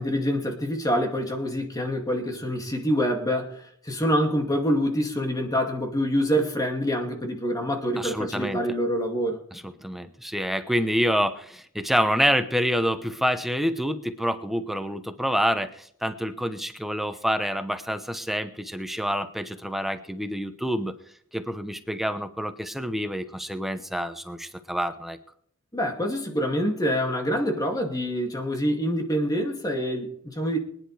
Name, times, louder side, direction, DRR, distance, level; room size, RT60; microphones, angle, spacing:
voice 1, 0.0-9.4 25.7-30.6, equal, 15° left, 2 dB, 2.4 m, -26 dB
voice 2, 8.0-8.6 9.5-20.9 21.3-25.2, equal, ahead, 9 dB, 0.9 m, -27 dB
24.0 x 10.5 x 3.4 m, 0.64 s
head